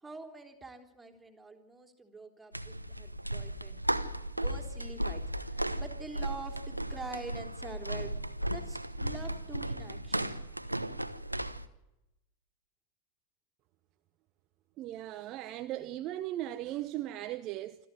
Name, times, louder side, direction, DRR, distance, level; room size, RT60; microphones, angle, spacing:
voice 1, 0.0-3.8 4.4-8.1 8.4-10.4, right 3 dB, 10° right, 3.5 m, -46 dB
sound 1, 2.5-11.7, right 1 dB, 85° right, 1.1 m, -35 dB
voice 2, 14.8-17.8, right 14 dB, 35° right, 0.9 m, -37 dB
26.5 x 14.0 x 9.1 m
figure-of-eight pair, 90°, 0 cm